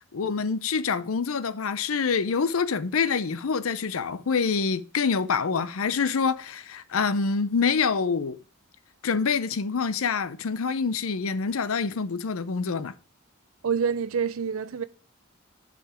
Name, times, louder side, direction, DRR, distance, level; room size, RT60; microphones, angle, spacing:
voice 1, 0.1-8.4 9.0-12.9, left 5 dB, 90° left, 0.6 m, -26 dB
voice 2, 13.6-14.8, right 6 dB, 90° right, 0.5 m, -27 dB
9.0 x 5.2 x 4.8 m
head